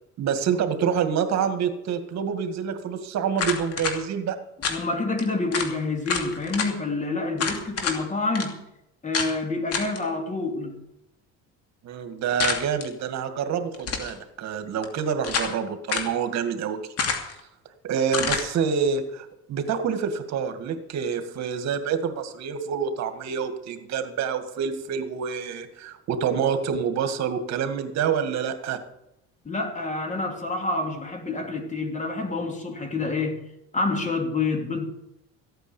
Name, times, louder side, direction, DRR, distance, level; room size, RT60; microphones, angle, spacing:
voice 1, 0.2-4.4 11.8-16.8 17.3-17.4 17.8-28.8, right 7 dB, 60° right, 2.1 m, -27 dB
sound 1, 3.4-4.0 4.6-4.8 5.2-5.3 5.5-5.7 6.1-6.7 7.4-8.0 8.3-8.5 9.1-9.3 9.7-10.0 12.4-12.9 13.7-14.1 14.8-15.6 15.9-16.1 17.0-17.4 18.1-18.5, left 5 dB, 50° left, 2.7 m, -27 dB
voice 2, 4.7-8.6 9.0-10.8 29.4-33.4 33.7-34.9, left 3 dB, 25° left, 2.9 m, -28 dB
15.0 x 9.2 x 7.1 m
cardioid pair, 120°, 31 cm